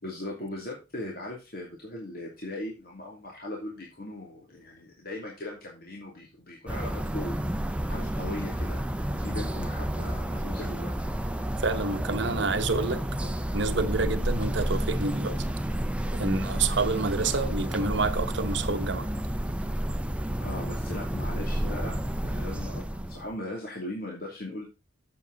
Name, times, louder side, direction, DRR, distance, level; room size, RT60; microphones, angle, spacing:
voice 1, 0.0-7.4 7.9-10.9 16.2-16.4 20.4-22.0 22.2-24.6, left 1 dB, 50° left, 2.7 m, -38 dB
sound 1, 6.7-23.3, right 1 dB, 5° right, 0.7 m, -30 dB
voice 2, 11.6-15.4 16.1-19.1, right 4 dB, 65° right, 1.0 m, -28 dB
8.1 x 7.6 x 3.9 m
head